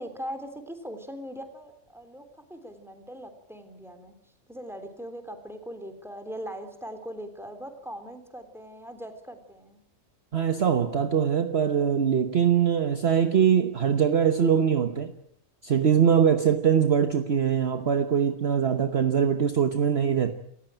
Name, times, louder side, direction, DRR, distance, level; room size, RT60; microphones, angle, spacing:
voice 1, 0.0-9.8, equal, ahead, 7 dB, 3.3 m, -40 dB
voice 2, 10.3-15.1 15.6-20.3, right 8 dB, 45° right, 9 dB, 1.3 m, -22 dB
28.5 x 15.0 x 9.0 m, 0.71 s
omnidirectional pair, 1.5 m